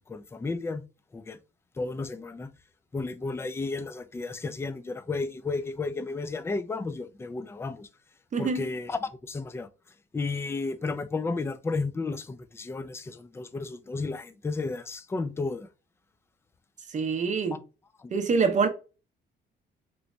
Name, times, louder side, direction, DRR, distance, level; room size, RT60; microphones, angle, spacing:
voice 1, 0.1-0.8 1.1-1.4 1.8-2.5 2.9-7.9 8.4-9.7 10.1-15.7, left 3 dB, 15° left, 0.3 m, -33 dB
voice 2, 8.3-8.7 16.9-17.6 18.1-18.7, right 5 dB, 40° right, 0.7 m, -25 dB
3.2 x 3.1 x 2.6 m
cardioid pair, 90°, 20 cm